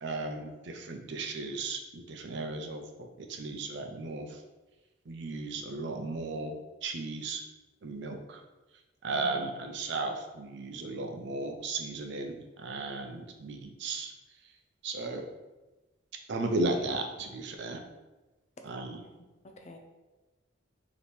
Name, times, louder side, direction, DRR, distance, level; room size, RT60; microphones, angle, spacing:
voice 1, 0.0-4.4 5.1-7.4 7.8-8.4 9.0-14.1 14.8-15.2 16.3-17.8 18.6-19.0, right 3 dB, 55° right, 4 dB, 0.5 m, -35 dB
voice 2, 9.1-9.5 18.6-19.8, equal, 35° left, 3 dB, 0.4 m, -49 dB
3.4 x 2.9 x 4.2 m, 1.1 s
head